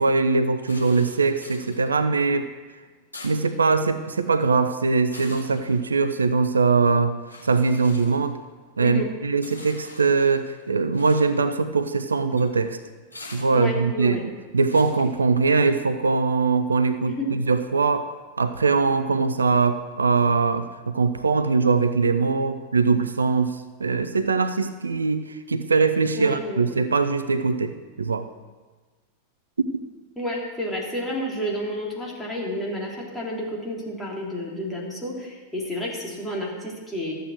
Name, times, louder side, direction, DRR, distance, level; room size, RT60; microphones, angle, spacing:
voice 1, 0.0-2.5 3.2-7.2 7.4-8.4 8.8-12.8 13.3-18.1 18.4-28.3, right 4 dB, 75° right, 11 dB, 0.5 m, -22 dB
sound 1, 0.7-15.8, left 2 dB, 80° left, 2.3 m, -47 dB
voice 2, 13.5-14.2 17.1-17.3 26.2-26.8 30.2-37.1, left 1 dB, 5° left, -4 dB, 3.4 m, -30 dB
13.5 x 7.9 x 6.3 m, 1.3 s
figure-of-eight pair, 90°, 0 cm